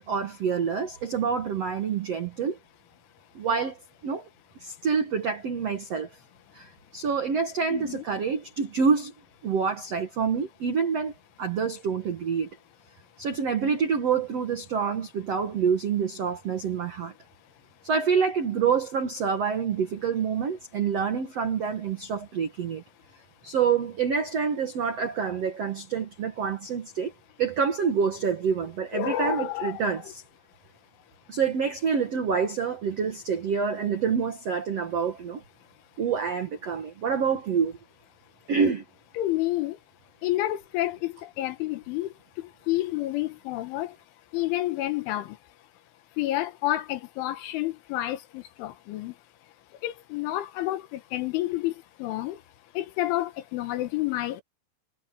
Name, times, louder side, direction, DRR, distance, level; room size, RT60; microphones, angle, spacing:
voice 1, 0.0-2.6 3.3-4.3 4.6-6.1 6.5-9.1 9.4-11.1 11.4-12.5 13.2-17.1 17.8-22.8 23.4-27.1 27.4-30.2 31.3-35.4 36.0-37.8 38.5-38.8, right 6 dB, 85° right, 1.3 m, -27 dB
voice 2, 7.7-8.0 28.9-30.1 39.2-39.8 40.2-44.0 44.3-45.4 46.2-49.2 49.8-52.4 52.7-54.4, left 15 dB, 80° left, 3.8 m, -30 dB
omnidirectional pair, 5.5 m